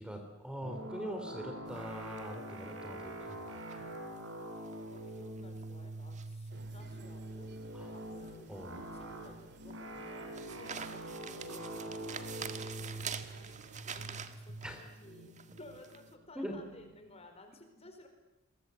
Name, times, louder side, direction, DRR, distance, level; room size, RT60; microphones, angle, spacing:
voice 1, 0.0-3.9 7.7-7.9 8.5-8.9 14.6-14.8 16.3-16.5, equal, 5° right, 4 dB, 3.4 m, -43 dB
sound 1, 0.6-17.1, right 1 dB, 70° right, 5.3 m, -45 dB
Newspaper Reading Foley, 1.7-16.1, right 7 dB, 35° right, 1.7 m, -48 dB
voice 2, 4.9-8.5 8.9-13.6 13.9-18.1, left 1 dB, 30° left, 6 dB, 4.6 m, -56 dB
sound 2, 6.5-14.2, right 2 dB, 55° right, 3.2 m, -57 dB
28.5 x 22.5 x 8.3 m, 0.98 s
head